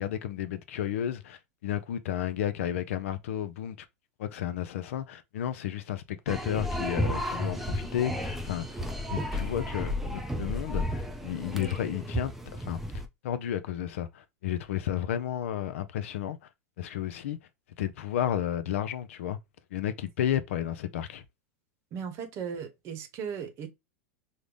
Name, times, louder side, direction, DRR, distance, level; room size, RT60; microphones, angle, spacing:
voice 1, 0.0-3.8 4.2-8.8 9.1-12.8 13.2-16.4 16.8-17.4 17.8-19.4 19.7-21.2, left 10 dB, 75° left, 0.5 m, -32 dB
sound 1, 6.3-13.1, equal, 5° right, 0.5 m, -33 dB
voice 2, 21.9-23.7, right 7 dB, 40° right, 0.9 m, -37 dB
3.8 x 2.1 x 3.2 m
hypercardioid pair, 115°, 7 cm